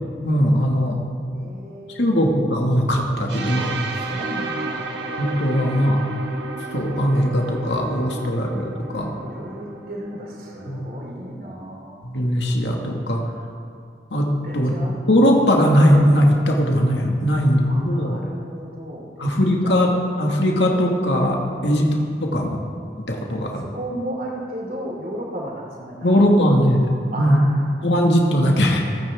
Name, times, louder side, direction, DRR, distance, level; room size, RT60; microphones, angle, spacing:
voice 1, 0.2-1.0 2.0-3.7 5.2-6.0 6.7-9.1 10.7-10.8 12.0-13.2 14.1-14.7 15.1-18.2 19.2-21.8 22.2-22.6 23.1-23.6 26.0-28.8, equal, 80° left, 0 dB, 1.8 m, -19 dB
voice 2, 1.3-2.2 3.5-5.0 9.0-12.1 14.4-15.0 17.4-19.3 19.6-19.8 21.5-22.0 23.1-23.2 23.6-26.1 27.1-27.7, right 1 dB, 50° right, -2 dB, 3.0 m, -34 dB
sound 1, 3.3-11.1, right 3 dB, 70° right, 1.5 m, -33 dB
27.0 x 9.6 x 3.5 m, 2.4 s
head